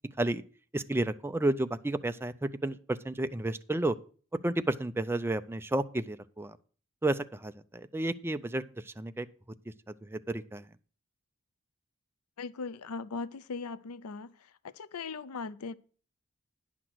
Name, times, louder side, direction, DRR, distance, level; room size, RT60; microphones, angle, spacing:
voice 1, 0.7-4.0 4.4-6.6 7.0-9.3 10.0-10.6, right 2 dB, 10° right, 0.4 m, -31 dB
voice 2, 12.4-14.3 14.7-15.8, left 4 dB, 85° left, 0.5 m, -39 dB
10.0 x 6.0 x 6.2 m
head